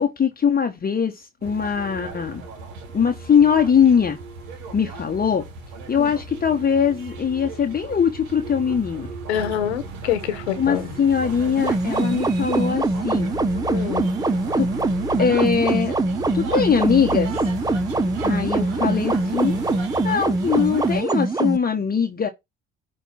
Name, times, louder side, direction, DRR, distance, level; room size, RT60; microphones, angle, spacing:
voice 1, 0.0-2.4 2.9-4.2 4.7-5.4 5.9-9.1 10.6-13.4 14.6-14.7 15.2-15.9 16.3-17.3 18.2-22.3, left 7 dB, 30° left, 1.1 m, -21 dB
sound 1, 1.4-21.0, right 3 dB, 75° right, 1.5 m, -35 dB
voice 2, 9.3-10.9 13.7-14.1, left 10 dB, 90° left, 1.3 m, -26 dB
sound 2, 11.6-21.6, right 2 dB, 10° right, 0.6 m, -23 dB
8.3 x 3.1 x 5.7 m
hypercardioid pair, 65°, 32 cm